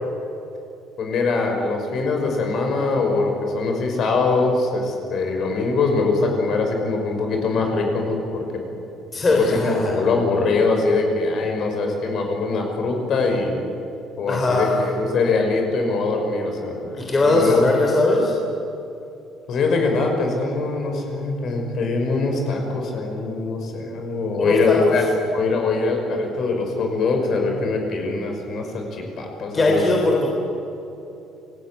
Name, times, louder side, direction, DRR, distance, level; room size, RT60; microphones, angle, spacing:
voice 1, 1.0-8.6 9.1-13.5 14.2-17.6 19.5-25.0 25.3-29.8, left 3 dB, 45° left, 3 dB, 5.7 m, -23 dB
voice 2, 9.1-10.0 14.3-14.8 17.0-18.3 24.4-24.9 29.5-30.3, left 2 dB, 20° left, 0 dB, 3.5 m, -19 dB
28.0 x 19.5 x 9.4 m, 2.8 s
cardioid pair, 155°, 0 cm